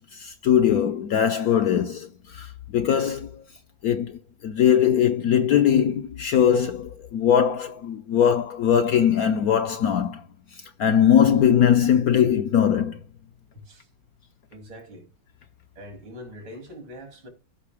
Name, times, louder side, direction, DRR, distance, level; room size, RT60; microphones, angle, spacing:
voice 1, 0.1-3.3 3.8-10.2 10.8-13.0, left 9 dB, 70° left, 0.9 m, -21 dB
voice 2, 14.5-15.1 15.8-17.3, equal, 85° right, 3.5 m, -42 dB
14.5 x 5.8 x 3.5 m
omnidirectional pair, 2.1 m